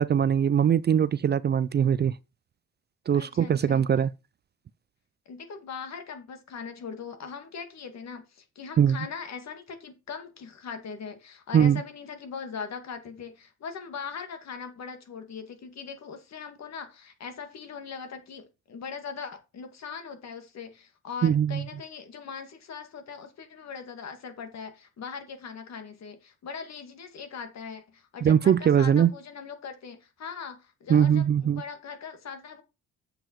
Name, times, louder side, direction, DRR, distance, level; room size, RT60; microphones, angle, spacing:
voice 1, 0.0-2.1 3.1-4.1 8.8-9.0 11.5-11.8 21.2-21.6 28.2-29.1 30.9-31.6, right 8 dB, 35° right, 0.4 m, -21 dB
voice 2, 3.1-3.9 5.3-32.6, left 6 dB, 60° left, 2.3 m, -40 dB
7.7 x 6.9 x 4.6 m
cardioid pair, 90°, 30 cm